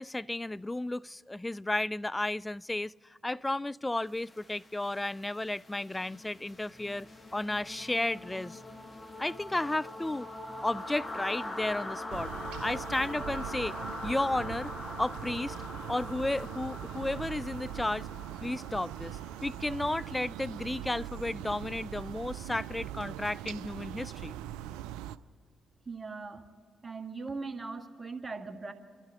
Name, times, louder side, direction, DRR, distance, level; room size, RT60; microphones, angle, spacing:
voice 1, 0.0-2.9 3.2-7.1 7.3-8.6 9.2-10.3 10.6-12.3 12.6-13.7 14.0-14.7 15.0-15.6 15.9-18.1 18.4-24.3, left 2 dB, 20° left, 0.3 m, -33 dB
sound 1, 4.1-21.9, left 2 dB, 35° left, 2.0 m, -43 dB
sound 2, 12.1-25.2, right 12 dB, 80° right, 0.4 m, -41 dB
voice 2, 25.8-26.5 26.8-28.7, right 4 dB, 35° right, 1.6 m, -39 dB
29.5 x 12.5 x 3.7 m
hypercardioid pair, 40°, 0 cm